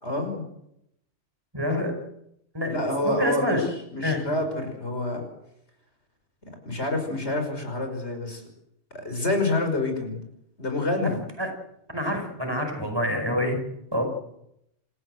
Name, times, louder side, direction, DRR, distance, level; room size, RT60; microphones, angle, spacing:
voice 1, 0.0-0.4 2.7-3.7 3.9-5.2 6.7-8.4 8.9-10.2 10.6-11.2, left 2 dB, 70° left, 5 dB, 5.7 m, -27 dB
voice 2, 1.5-1.9 2.5-3.7 4.0-4.3 11.0-11.1 11.4-11.5 11.9-13.6 13.9-14.1, left 1 dB, 20° right, 4 dB, 5.2 m, -27 dB
28.5 x 15.0 x 7.8 m, 0.80 s
omnidirectional pair, 1.2 m